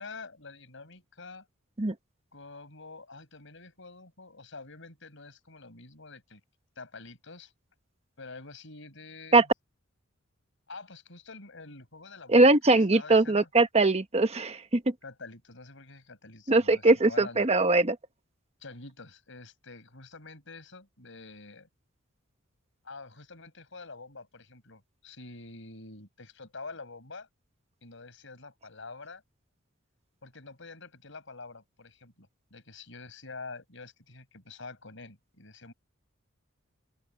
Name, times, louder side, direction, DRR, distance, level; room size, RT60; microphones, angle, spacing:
voice 1, 0.0-1.4 2.3-6.4 6.8-7.5 8.2-9.4 10.7-12.5 12.9-13.5 15.0-17.5 18.6-21.7 22.8-27.3 27.8-29.2 30.2-35.7, left 3 dB, 65° left, 6.4 m, -47 dB
voice 2, 12.3-14.9 16.5-18.0, right 2 dB, 30° right, 1.2 m, -21 dB
open air
head